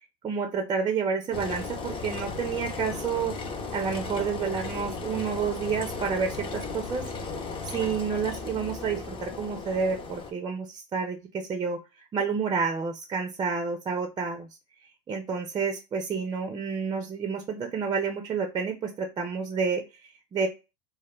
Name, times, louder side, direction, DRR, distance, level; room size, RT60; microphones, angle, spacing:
voice 1, 0.2-7.1 7.6-11.8 12.1-14.5 15.1-20.5, right 5 dB, 20° right, 5 dB, 0.4 m, -29 dB
Engine, 1.3-10.3, left 3 dB, 30° left, 0.5 m, -36 dB
2.2 x 2.1 x 3.0 m, 0.27 s
hypercardioid pair, 100°, 19 cm